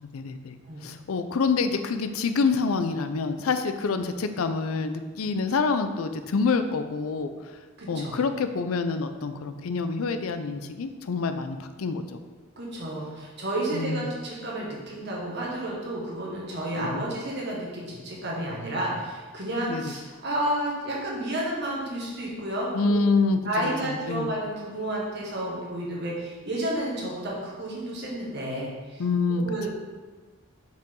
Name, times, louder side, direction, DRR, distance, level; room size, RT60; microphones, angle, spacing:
voice 1, 0.0-7.5 7.9-12.2 13.7-14.1 16.8-17.0 19.7-19.9 22.7-24.3 29.0-29.7, left 4 dB, 85° left, 9 dB, 0.5 m, -27 dB
voice 2, 7.8-8.1 12.6-23.0 23.4-29.0 29.3-29.7, right 1 dB, 55° right, -3 dB, 1.5 m, -31 dB
5.6 x 4.9 x 3.8 m, 1.4 s
head